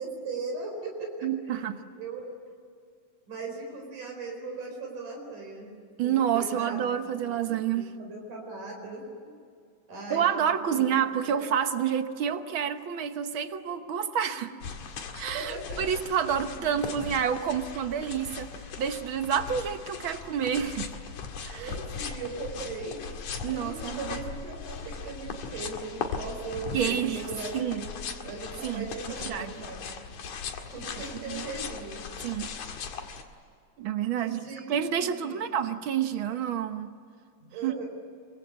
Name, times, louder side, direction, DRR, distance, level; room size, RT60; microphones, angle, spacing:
voice 1, 0.0-1.6 2.0-2.2 3.3-5.7 6.0-6.9 7.2-7.3 7.7-9.3 9.9-10.9 11.3-11.4 14.3-14.5 15.3-15.8 16.5-16.8 21.5-23.0 23.5-30.0 30.7-32.1 34.2-35.5 37.5-37.9, right 3 dB, 85° right, 1 dB, 6.0 m, -39 dB
voice 2, 1.2-1.8 6.0-7.9 10.1-14.5 15.1-18.5 18.8-20.9 21.5-21.7 23.4-24.0 26.7-27.2 27.5-27.8 28.6-28.9 29.2-29.6 31.3-31.4 32.2-32.5 33.8-34.4 34.7-36.9 37.6-37.7, right 8 dB, 60° right, 8 dB, 1.4 m, -28 dB
sound 1, 14.6-33.2, left 5 dB, 75° left, 3.3 m, -38 dB
27.0 x 24.0 x 8.3 m, 2.2 s
omnidirectional pair, 3.5 m